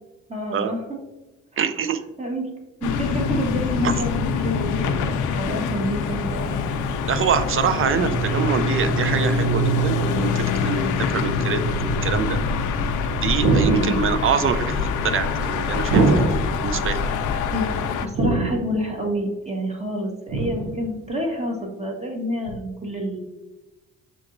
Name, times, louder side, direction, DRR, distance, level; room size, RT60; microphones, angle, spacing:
voice 1, 0.3-1.0 2.2-2.5 2.8-6.6 13.6-14.1 17.5-17.7 18.0-23.2, equal, 20° right, 0 dB, 1.2 m, -28 dB
voice 2, 1.6-2.0 3.8-3.9 7.1-11.7 12.0-12.4 13.2-17.0, right 7 dB, 45° right, 10 dB, 0.5 m, -25 dB
sound 1, 2.8-18.1, left 3 dB, 85° left, 0.5 m, -24 dB
sound 2, 13.4-14.2 15.9-16.7 18.1-18.9 20.3-20.9 22.5-22.6, right 3 dB, 80° right, 0.8 m, -22 dB
6.9 x 2.9 x 2.5 m, 1.1 s
cardioid pair, 90°, 30 cm